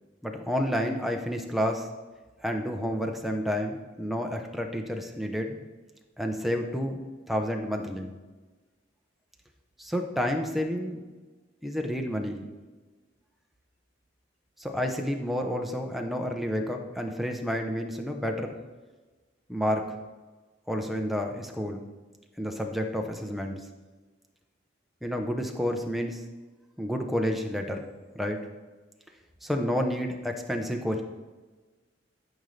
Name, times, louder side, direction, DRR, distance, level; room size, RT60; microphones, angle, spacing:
voice 1, 0.2-1.9 2.4-5.6 6.2-7.0 7.3-8.1 9.8-11.0 11.6-12.5 14.6-18.6 19.5-19.9 20.7-21.8 22.4-23.6 25.0-26.2 26.8-27.9 28.1-28.4 29.4-31.0, equal, ahead, 2 dB, 0.8 m, -30 dB
13.0 x 5.4 x 3.3 m, 1.3 s
head